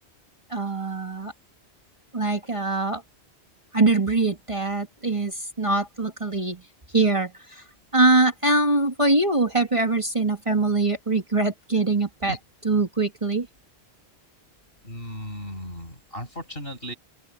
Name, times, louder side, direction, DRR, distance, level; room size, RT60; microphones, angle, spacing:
voice 1, 0.5-1.3 2.1-3.0 3.7-6.6 6.9-7.6 7.9-12.4 12.6-13.5, right 3 dB, 30° right, 1.9 m, -23 dB
voice 2, 14.8-16.9, equal, 60° left, 7.3 m, -36 dB
open air
omnidirectional pair, 1.1 m